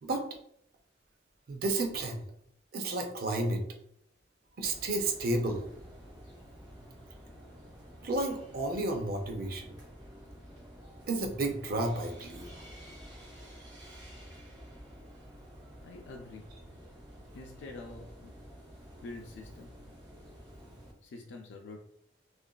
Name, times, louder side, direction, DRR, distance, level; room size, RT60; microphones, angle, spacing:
voice 1, 1.5-2.2 2.7-3.6 4.6-5.6 8.0-9.7 11.1-12.5, right 2 dB, 55° right, 3 dB, 0.5 m, -31 dB
sound 1, 4.6-20.9, equal, 20° right, 0.9 m, -50 dB
voice 2, 15.8-16.5 17.3-18.4 19.0-19.8 21.0-21.8, left 3 dB, 75° left, 1 dB, 0.4 m, -46 dB
2.9 x 2.4 x 2.3 m, 0.69 s
head